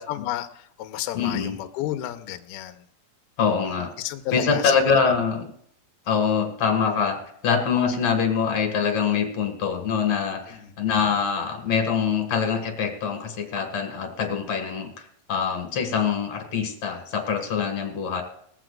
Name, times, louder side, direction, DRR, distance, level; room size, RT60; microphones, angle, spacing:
voice 1, 0.1-2.8 4.0-4.8 10.5-10.7, left 13 dB, 75° left, 7 dB, 2.4 m, -32 dB
voice 2, 1.1-1.6 3.4-3.9 4.3-5.5 6.1-14.9 15.3-18.2, left 6 dB, 50° left, 5 dB, 2.4 m, -24 dB
20.5 x 15.5 x 2.5 m, 0.68 s
omnidirectional pair, 5.4 m